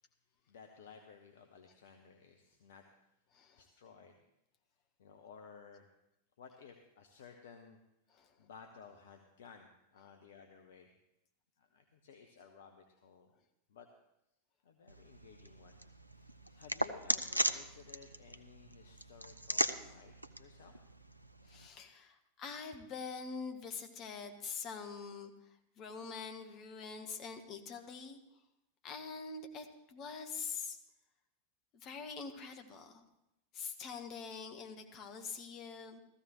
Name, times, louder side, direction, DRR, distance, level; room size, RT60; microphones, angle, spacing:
voice 1, 0.4-2.9 3.5-4.2 5.0-5.9 6.4-7.8 8.4-11.0 11.6-13.3 13.7-13.9 14.6-16.1 16.6-20.7, left 6 dB, 60° left, 5 dB, 0.9 m, -57 dB
sound 1, 14.9-21.7, right 1 dB, 85° right, 0.5 m, -39 dB
voice 2, 21.5-28.2 28.8-30.8 31.7-33.0 33.5-36.0, left 5 dB, 35° left, 5 dB, 1.3 m, -45 dB
16.0 x 14.0 x 3.1 m, 0.87 s
figure-of-eight pair, 90°, 0 cm